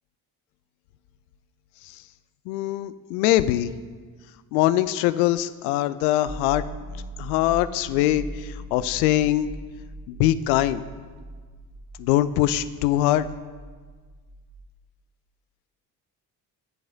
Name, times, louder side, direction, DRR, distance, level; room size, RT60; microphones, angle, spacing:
voice 1, 2.5-3.7 4.5-6.6 7.2-9.5 10.1-10.8 12.0-13.3, left 14 dB, 60° left, 15 dB, 0.5 m, -22 dB
sound 1, 6.2-14.7, right 1 dB, 45° right, 1.6 m, -40 dB
18.5 x 7.5 x 2.7 m, 1.5 s
figure-of-eight pair, 45°, 49 cm